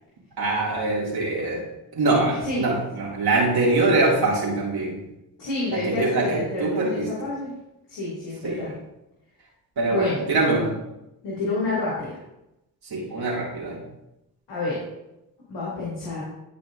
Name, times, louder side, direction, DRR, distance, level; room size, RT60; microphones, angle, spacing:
voice 1, 0.4-1.6 1.9-5.0 5.7-7.3 8.4-8.7 9.8-10.8 12.8-13.8, right 2 dB, 60° right, -5 dB, 2.5 m, -23 dB
voice 2, 5.4-7.5 7.9-8.7 9.9-10.2 11.2-12.2 14.5-14.8 15.5-16.2, left 2 dB, 75° left, -8 dB, 2.8 m, -28 dB
14.5 x 5.0 x 2.6 m, 0.89 s
supercardioid pair, 40°, 42 cm